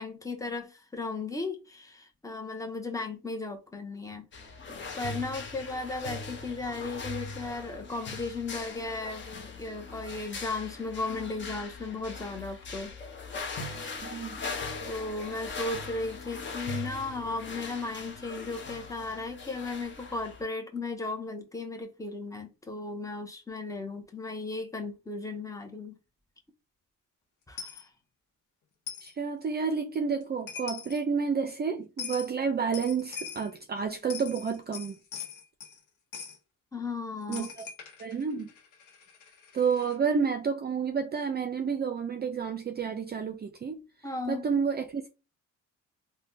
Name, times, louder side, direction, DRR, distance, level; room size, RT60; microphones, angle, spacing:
voice 1, 0.0-4.3 4.9-12.9 14.9-26.0 27.5-27.9 36.7-37.5 44.0-44.4, left 3 dB, 10° left, 0.8 m, -36 dB
sound 1, 4.3-20.4, left 3 dB, 40° left, 0.9 m, -40 dB
voice 2, 14.0-14.4 29.0-35.0 37.3-37.6 38.0-38.5 39.5-43.8 44.3-45.1, right 6 dB, 35° right, 0.5 m, -30 dB
Coin (dropping), 27.6-27.8 28.9-29.1 30.2-30.3 30.5-31.0 32.0-32.3 32.7-33.5 33.9-35.8 36.1-36.4 37.3-40.0, left 7 dB, 80° left, 0.9 m, -42 dB
3.3 x 2.2 x 2.7 m
cardioid pair, 90°, 30 cm